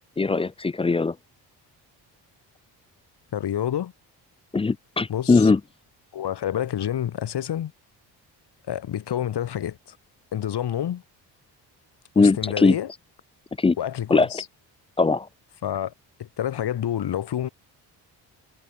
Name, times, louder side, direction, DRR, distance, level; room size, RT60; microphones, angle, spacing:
voice 1, 0.2-1.2 4.5-5.6 12.2-12.8 13.6-13.8 14.1-14.3 15.0-15.3, left 4 dB, 15° left, 0.4 m, -20 dB
voice 2, 3.3-3.9 5.1-5.5 6.1-7.7 8.7-10.0 10.3-11.0 12.2-12.9 13.8-14.4 15.6-15.9 16.2-17.5, left 10 dB, 65° left, 3.1 m, -28 dB
supercardioid pair, 65°, 44 cm